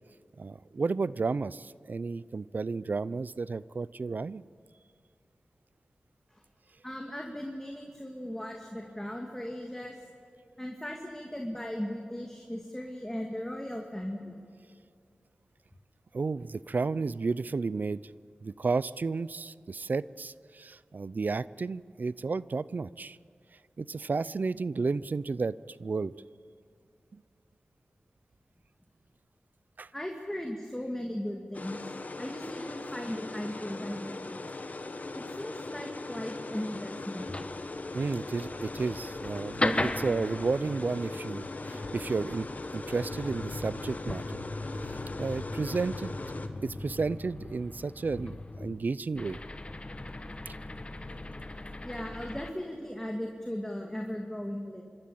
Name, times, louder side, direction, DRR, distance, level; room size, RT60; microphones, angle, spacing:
voice 1, 0.4-4.4 16.1-18.0 18.4-23.2 23.8-26.1 27.1-27.2 29.8-29.9 37.9-42.5 42.7-44.4 44.9-46.2 46.6-49.4 50.5-50.6, right 4 dB, 60° right, 19 dB, 0.5 m, -32 dB
voice 2, 6.8-10.0 10.6-14.4 29.9-34.5 35.1-37.3 51.8-54.8, left 1 dB, 10° left, 1 dB, 2.4 m, -37 dB
sound 1, 31.5-46.5, left 2 dB, 50° left, 1.5 m, -40 dB
sound 2, 37.2-52.5, left 2 dB, 35° left, 1.2 m, -38 dB
25.5 x 13.0 x 8.8 m, 2.4 s
cardioid pair, 45°, 3 cm